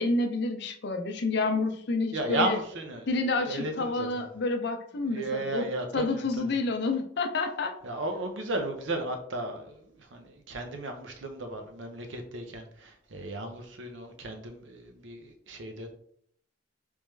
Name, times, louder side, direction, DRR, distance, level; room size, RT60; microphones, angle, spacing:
voice 1, 0.0-2.6 3.1-5.7 5.9-7.7, left 3 dB, 65° left, 5 dB, 0.6 m, -29 dB
voice 2, 2.1-3.0 3.3-4.2 5.0-6.5 7.8-9.8 10.1-15.9, right 2 dB, 80° right, 5 dB, 0.7 m, -34 dB
3.4 x 3.2 x 3.2 m, 0.63 s
head